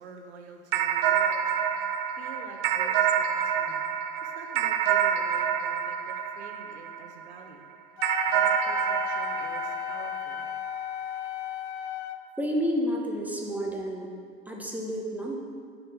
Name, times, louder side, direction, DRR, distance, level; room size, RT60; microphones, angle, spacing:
voice 1, 0.0-1.7 2.2-3.9 4.2-7.6 8.3-10.5, right 4 dB, 90° right, 4 dB, 0.9 m, -47 dB
sound 1, 0.7-7.3 8.0-10.8, right 8 dB, 60° right, 0.5 m, -27 dB
Wind instrument woodwind instrument, 8.0-12.2, left 11 dB, 85° left, 0.5 m, -35 dB
voice 2, 12.4-14.1 14.5-15.4, equal, 5° right, -1 dB, 0.9 m, -30 dB
6.8 x 4.3 x 5.8 m, 2.2 s
hypercardioid pair, 105°, 32 cm